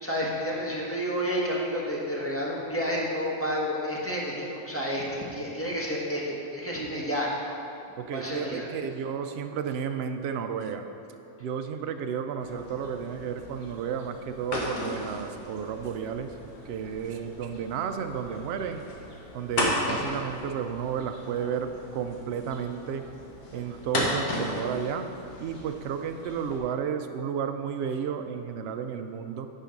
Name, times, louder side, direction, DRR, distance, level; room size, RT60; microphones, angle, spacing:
voice 1, 0.0-7.3 8.1-8.7, equal, 10° left, -4 dB, 1.2 m, -30 dB
voice 2, 8.0-10.9 11.4-16.3 16.7-18.8 19.3-23.0 23.5-25.1 25.4-29.5, right 7 dB, 65° right, 7 dB, 0.6 m, -32 dB
sound 1, 12.4-26.6, left 1 dB, 85° left, 1.8 m, -35 dB
9.9 x 5.0 x 5.2 m, 2.7 s
omnidirectional pair, 1.5 m